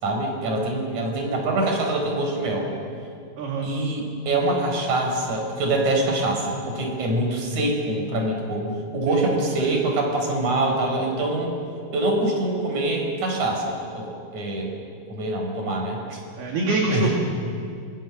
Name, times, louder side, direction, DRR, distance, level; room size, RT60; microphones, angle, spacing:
voice 1, 0.0-2.7 3.6-8.7 8.9-11.5 11.9-14.7 15.1-16.2 16.9-17.1, right 2 dB, 40° right, 2 dB, 5.7 m, -24 dB
voice 2, 3.4-3.7 9.1-9.3 9.6-9.7 16.4-17.1, right 3 dB, 60° right, -1 dB, 4.2 m, -24 dB
27.0 x 26.0 x 7.5 m, 2.4 s
omnidirectional pair, 5.4 m